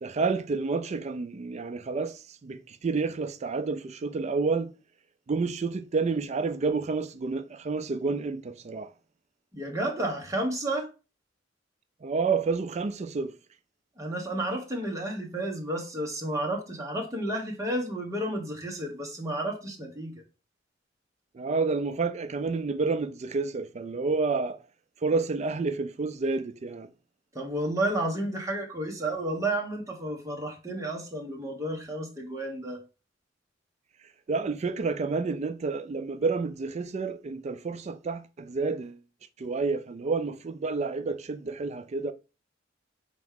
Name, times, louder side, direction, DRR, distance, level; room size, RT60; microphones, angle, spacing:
voice 1, 0.0-4.7 5.3-8.9 12.0-13.3 21.3-24.6 25.0-26.9 34.3-39.0 39.4-42.1, right 4 dB, 35° right, 0.4 m, -29 dB
voice 2, 9.5-10.9 14.0-20.2 27.3-32.8, right 1 dB, 15° right, 1.1 m, -31 dB
4.6 x 3.0 x 3.6 m
head